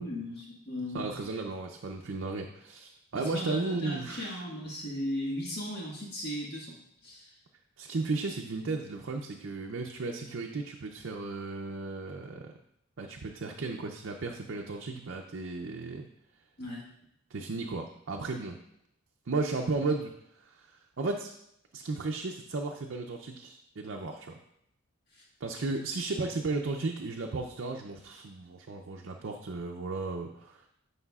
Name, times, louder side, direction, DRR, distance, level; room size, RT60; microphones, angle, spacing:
voice 1, 0.0-1.1 3.1-6.8 7.0-7.3 16.6-16.8 25.1-25.3, equal, 50° left, -3 dB, 1.5 m, -37 dB
voice 2, 0.9-4.4 7.8-12.5 13.0-16.1 17.3-18.6 19.3-21.3 21.7-24.3 25.4-30.7, right 3 dB, 60° right, 2 dB, 0.5 m, -35 dB
9.6 x 5.6 x 2.4 m, 0.75 s
head